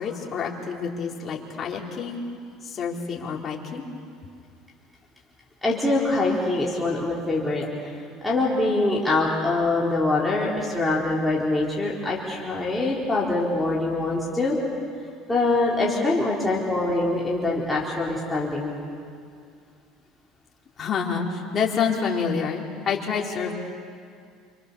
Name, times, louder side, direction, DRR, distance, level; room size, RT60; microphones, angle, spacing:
voice 1, 0.0-2.2 2.6-3.8 20.8-23.5, left 6 dB, 35° left, -1 dB, 4.1 m, -28 dB
voice 2, 5.6-7.9 8.2-14.6 15.3-18.7, left 2 dB, 5° left, -6 dB, 4.2 m, -24 dB
28.0 x 27.0 x 7.0 m, 2.3 s
supercardioid pair, 115°, 0 cm